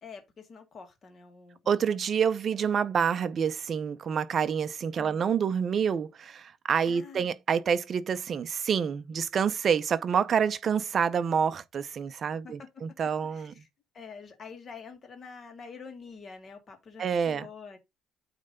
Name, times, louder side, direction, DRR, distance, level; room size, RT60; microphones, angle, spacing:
voice 1, 0.0-2.0 2.5-2.6 4.9-5.4 6.9-7.4 12.4-12.7 13.2-13.7 13.9-17.8, left 5 dB, 30° left, 1.8 m, -47 dB
voice 2, 1.7-13.5 17.0-17.5, right 7 dB, 35° right, 0.6 m, -27 dB
8.9 x 3.3 x 5.2 m
cardioid pair, 165°, 0 cm